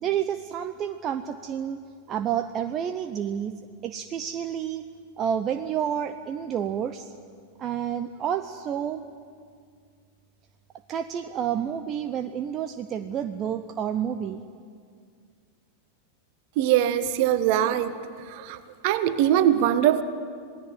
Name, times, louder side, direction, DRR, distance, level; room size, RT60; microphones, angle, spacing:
voice 1, 0.0-1.8 2.1-3.5 3.8-4.9 5.2-7.1 7.6-9.0 10.9-14.4, right 9 dB, 30° right, 9 dB, 0.9 m, -29 dB
voice 2, 16.6-18.0 18.3-18.6 18.8-20.0, right 11 dB, 45° right, 12 dB, 1.4 m, -22 dB
27.0 x 18.5 x 9.2 m, 2.1 s
figure-of-eight pair, 90°, 0 cm